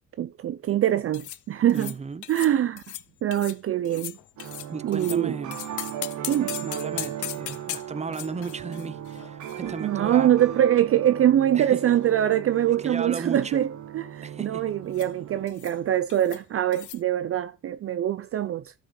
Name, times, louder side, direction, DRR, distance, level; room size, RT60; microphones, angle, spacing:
voice 1, 0.2-1.9 2.3-2.8 3.2-4.5 4.8-5.4 6.3-6.6 9.6-13.7 13.9-18.7, right 11 dB, 50° right, 0.5 m, -24 dB
sound 1, 1.1-1.4 1.7-2.0 2.2-2.5 2.8-3.0 3.3-3.6 3.8-5.2 5.5-10.2 10.5-10.6 11.3-12.2 12.5-12.8 13.0-13.5 14.9-15.1 15.5-15.8 16.1-16.4 16.7-17.0, left 14 dB, 75° left, 0.7 m, -39 dB
voice 2, 1.7-2.3 4.7-5.6 6.6-10.3 11.5-11.9 12.7-13.6 14.2-14.6, right 5 dB, 20° right, 0.8 m, -35 dB
sound 2, 4.4-15.5, right 11 dB, 70° right, 1.2 m, -37 dB
13.0 x 5.6 x 4.3 m
cardioid pair, 90°, 30 cm